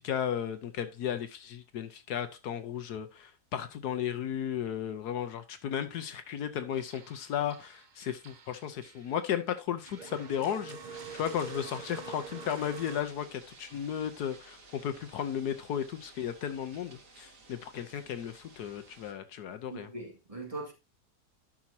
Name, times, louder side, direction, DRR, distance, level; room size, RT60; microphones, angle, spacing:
voice 1, 0.0-19.9, left 9 dB, 75° left, 1.3 m, -35 dB
sound 1, 6.7-9.4 9.8-13.0, right 5 dB, 40° right, 0.7 m, -46 dB
sound 2, 10.9-19.1, right 3 dB, 75° right, 2.6 m, -55 dB
voice 2, 19.6-20.7, right 2 dB, 20° right, 2.2 m, -41 dB
11.5 x 6.0 x 2.8 m
omnidirectional pair, 1.8 m